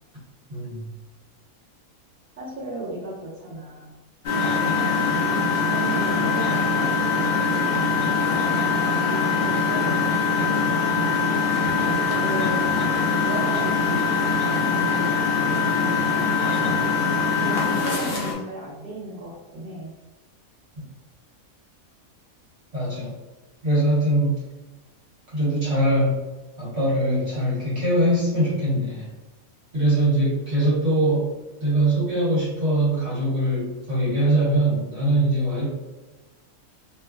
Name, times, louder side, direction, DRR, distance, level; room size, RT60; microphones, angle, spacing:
voice 1, 0.5-0.9 22.7-23.1 23.6-24.4 25.3-26.2 26.6-29.1 29.7-31.3 31.6-35.7, right 1 dB, 40° right, -9 dB, 1.3 m, -22 dB
voice 2, 2.4-3.9 4.5-5.2 5.7-7.5 8.3-10.9 11.8-12.8 13.2-14.1 14.6-15.4 15.7-16.4 17.3-19.9, right 1 dB, 10° right, -11 dB, 1.1 m, -35 dB
Engine, 4.2-18.3, left 4 dB, 55° left, 0.8 m, -22 dB
3.0 x 2.3 x 2.3 m, 1.2 s
omnidirectional pair, 1.5 m